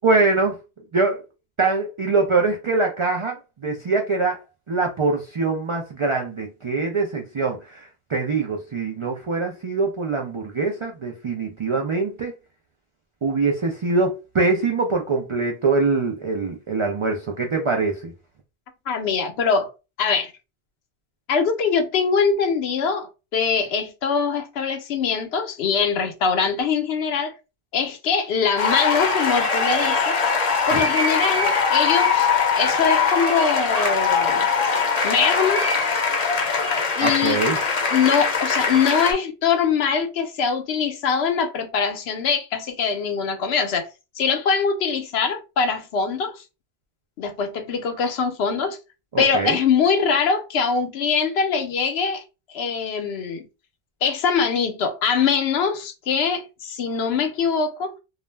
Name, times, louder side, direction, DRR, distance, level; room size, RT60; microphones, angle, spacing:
voice 1, 0.0-0.6 0.9-1.2 1.6-4.4 4.7-12.3 13.2-18.1 30.7-30.8 37.0-37.6 49.1-49.6, right 3 dB, 55° right, 0.3 m, -23 dB
voice 2, 18.9-19.7 20.0-20.3 21.3-27.3 27.7-30.2 30.7-32.3 32.5-34.5 35.0-35.7 37.0-37.4 37.9-43.9 44.2-46.4 47.2-48.8 49.2-52.2 52.5-53.4 54.0-57.9, left 6 dB, 80° left, 0.8 m, -23 dB
sound 1, 28.6-39.1, left 5 dB, 45° left, 0.7 m, -21 dB
2.3 x 2.1 x 3.1 m
omnidirectional pair, 1.1 m